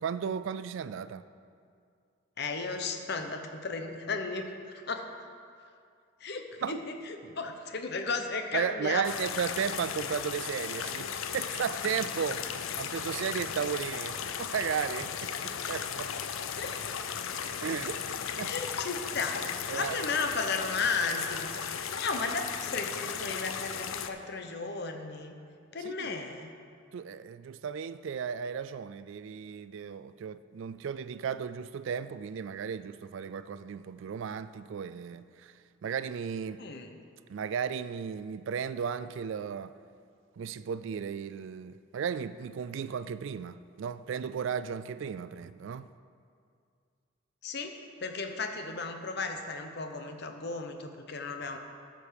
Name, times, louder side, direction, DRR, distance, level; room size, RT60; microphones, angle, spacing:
voice 1, 0.0-1.2 6.6-6.8 8.5-11.1 11.3-12.4 12.7-16.1 17.6-18.5 19.7-20.0 25.8-26.2 26.9-35.5 35.8-36.6 37.3-39.7 40.4-45.9, right 7 dB, 60° right, 0.3 m, -35 dB
voice 2, 2.4-4.5 4.9-5.0 6.2-9.0 16.6-16.8 18.4-25.3 25.7-26.5 36.6-36.9 47.4-47.7 48.0-51.6, left 4 dB, 50° left, 0.8 m, -34 dB
sound 1, 9.0-24.1, left 7 dB, 70° left, 0.5 m, -36 dB
13.5 x 5.2 x 6.5 m
head